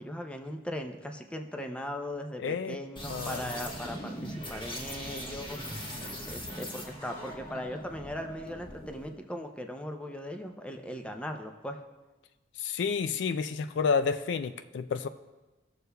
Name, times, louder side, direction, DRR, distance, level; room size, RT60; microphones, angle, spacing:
voice 1, 0.0-5.6 6.3-11.8, left 1 dB, 5° left, 5 dB, 0.5 m, -39 dB
voice 2, 2.4-2.8 3.1-3.4 12.6-15.1, left 5 dB, 70° left, 12 dB, 0.3 m, -30 dB
sound 1, 3.0-9.1, equal, 30° left, 1.2 m, -40 dB
17.0 x 6.7 x 2.3 m, 1.2 s
head